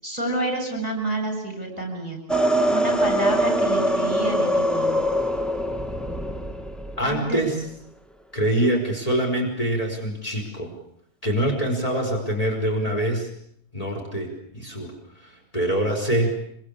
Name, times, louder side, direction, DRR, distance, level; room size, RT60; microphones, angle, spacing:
voice 1, 0.0-2.2 2.7-5.0 7.0-7.4, right 1 dB, 25° right, 4 dB, 7.5 m, -28 dB
sound 1, 2.3-7.1, equal, ahead, 1.1 m, -23 dB
voice 2, 7.0-7.6 8.3-10.7 11.2-13.3 13.7-16.3, right 1 dB, 25° left, 0 dB, 5.4 m, -25 dB
26.0 x 25.0 x 8.6 m, 0.70 s
omnidirectional pair, 1.6 m